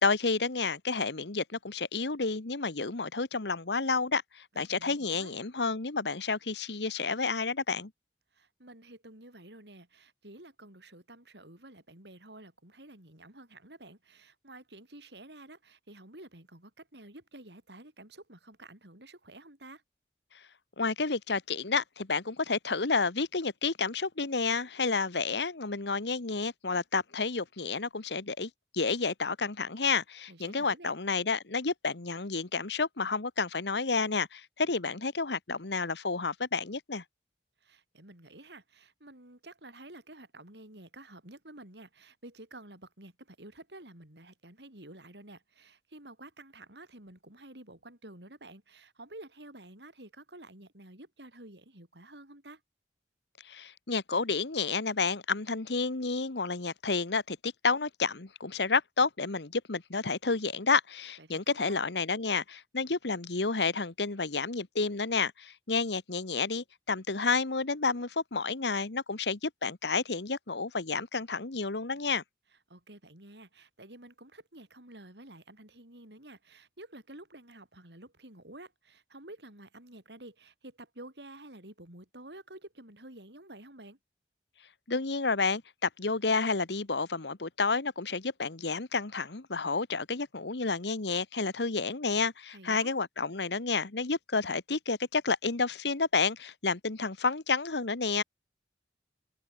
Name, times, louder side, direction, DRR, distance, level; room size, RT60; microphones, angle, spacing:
voice 1, 0.0-7.9 20.8-37.0 53.4-72.2 84.9-98.2, left 4 dB, 75° left, 1.4 m, -30 dB
voice 2, 4.5-5.3 8.3-19.8 30.3-30.9 37.6-52.6 61.2-61.8 72.7-84.0 92.5-92.9, right 1 dB, 75° right, 7.6 m, -50 dB
head